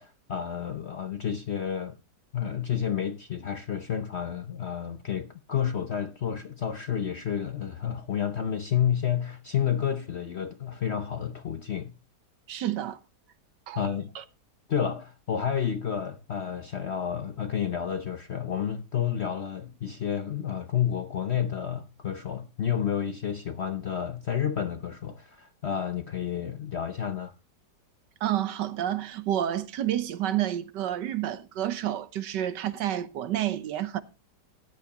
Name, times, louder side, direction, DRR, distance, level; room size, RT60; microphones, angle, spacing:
voice 1, 0.0-2.0 2.3-12.0 13.8-14.1 14.7-27.3, left 8 dB, 55° left, 0.7 m, -30 dB
voice 2, 12.5-13.0 13.7-14.2 28.2-34.0, right 12 dB, 75° right, 1.5 m, -29 dB
15.0 x 10.5 x 2.9 m
omnidirectional pair, 1.9 m